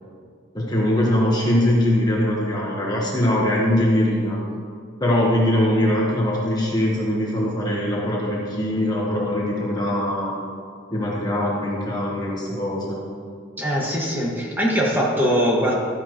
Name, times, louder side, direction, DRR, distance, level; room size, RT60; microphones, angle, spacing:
voice 1, 0.5-4.4 5.0-10.4 10.9-13.0, left 1 dB, 20° left, -4 dB, 1.3 m, -22 dB
voice 2, 13.6-15.8, equal, 10° right, -3 dB, 1.7 m, -21 dB
13.5 x 11.0 x 3.1 m, 2.1 s
head